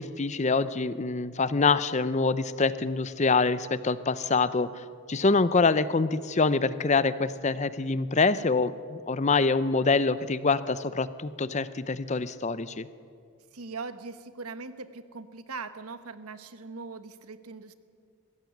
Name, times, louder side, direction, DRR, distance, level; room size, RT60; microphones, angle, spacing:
voice 1, 0.0-4.7 5.1-12.9, left 4 dB, 30° left, 15 dB, 0.6 m, -25 dB
voice 2, 13.5-17.7, right 4 dB, 85° right, 11 dB, 1.2 m, -40 dB
21.5 x 15.5 x 9.2 m, 2.3 s
head